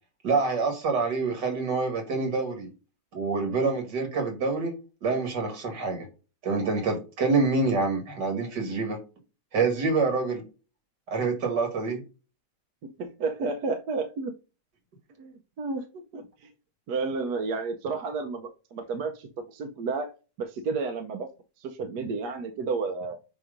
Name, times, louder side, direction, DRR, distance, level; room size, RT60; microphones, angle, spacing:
voice 1, 0.2-2.7 3.1-6.1 6.4-9.0 9.5-10.4 11.1-12.0, right 4 dB, 90° right, 2.5 m, -26 dB
voice 2, 12.8-14.3 15.2-16.5 16.9-20.1 20.4-21.3 21.6-23.2, right 4 dB, 70° right, 1.3 m, -32 dB
8.4 x 3.0 x 5.1 m
omnidirectional pair, 1.8 m